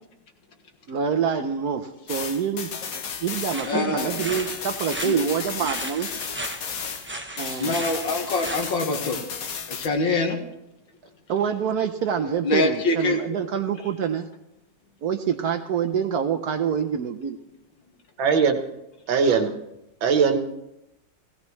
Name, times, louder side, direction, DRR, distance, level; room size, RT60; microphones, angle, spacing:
voice 1, 0.9-6.1 7.4-7.8 11.3-14.3 15.0-17.4 19.3-19.5, right 7 dB, 65° right, 8 dB, 1.0 m, -26 dB
sound 1, 2.1-7.1 7.4-9.9, left 6 dB, 55° left, 1.3 m, -34 dB
sound 2, 3.5-8.7, right 1 dB, 20° right, 0.3 m, -36 dB
voice 2, 3.6-4.1 5.0-5.2 7.6-9.2 9.7-10.4 12.4-13.2, left 2 dB, 75° left, 3 dB, 2.3 m, -24 dB
voice 3, 18.2-18.6 19.1-19.5 20.0-20.4, right 6 dB, 85° right, 6 dB, 1.9 m, -20 dB
17.0 x 16.5 x 3.1 m, 0.89 s
omnidirectional pair, 2.1 m